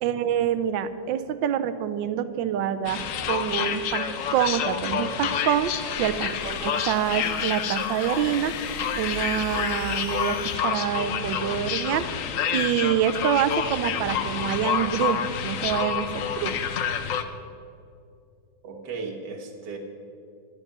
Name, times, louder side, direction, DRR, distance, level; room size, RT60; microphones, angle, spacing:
voice 1, 0.0-8.5 8.9-12.1 12.5-16.1 16.4-16.6, right 9 dB, 80° right, 12 dB, 1.4 m, -26 dB
sound 1, 2.8-17.2, left 8 dB, 65° left, 0.8 m, -28 dB
sound 2, 5.1-10.6, left 7 dB, 85° left, 1.7 m, -42 dB
voice 2, 18.6-19.8, right 4 dB, 65° right, 3 dB, 2.0 m, -36 dB
12.0 x 10.5 x 6.0 m, 2.5 s
omnidirectional pair, 2.1 m